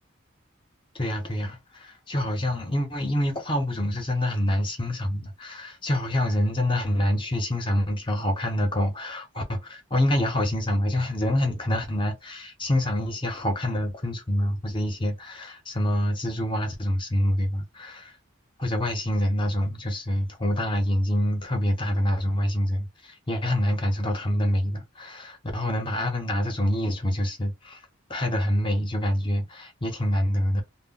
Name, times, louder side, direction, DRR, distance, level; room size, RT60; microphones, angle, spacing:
voice 1, 0.9-18.2 18.6-27.8 28.1-30.6, left 1 dB, 25° left, 0.7 m, -26 dB
2.1 x 2.1 x 3.6 m
head